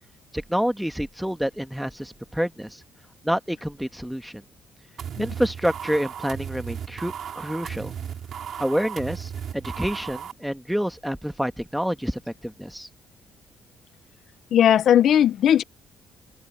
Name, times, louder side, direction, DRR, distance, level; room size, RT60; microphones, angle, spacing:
voice 1, 0.3-2.8 3.2-4.4 5.2-7.9 8.6-12.9, equal, ahead, 1.5 m, -28 dB
sound 1, 5.0-10.3, right 8 dB, 60° right, 2.9 m, -35 dB
voice 2, 14.5-15.6, left 10 dB, 65° left, 0.6 m, -17 dB
cardioid pair, 90°, 0 cm